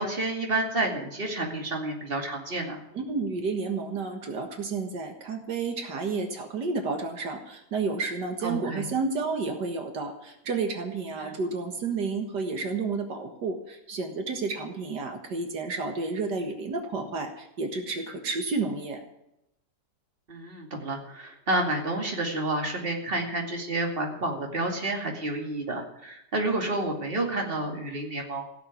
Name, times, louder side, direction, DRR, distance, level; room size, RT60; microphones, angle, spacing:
voice 1, 0.0-2.8 8.4-8.9 11.2-11.3 20.3-28.5, right 2 dB, 30° right, 1 dB, 2.8 m, -30 dB
voice 2, 2.9-19.0, right 4 dB, 80° right, 4 dB, 2.2 m, -31 dB
16.5 x 7.3 x 9.8 m, 0.84 s
omnidirectional pair, 1.8 m